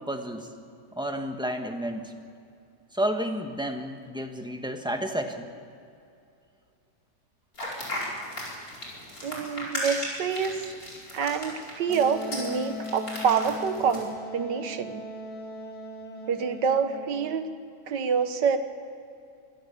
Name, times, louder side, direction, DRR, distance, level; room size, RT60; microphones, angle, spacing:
voice 1, 0.1-0.5 0.9-2.1 2.9-5.5, right 1 dB, 5° right, 4 dB, 1.4 m, -31 dB
sound 1, 7.6-14.1, left 1 dB, 55° left, 5.4 m, -36 dB
voice 2, 9.2-10.6 11.1-15.0 16.3-17.5 17.9-18.6, right 6 dB, 85° right, 9 dB, 1.9 m, -27 dB
Wind instrument woodwind instrument, 11.9-17.4, left 1 dB, 75° left, 2.1 m, -39 dB
24.0 x 15.5 x 7.1 m, 2.5 s
omnidirectional pair, 1.8 m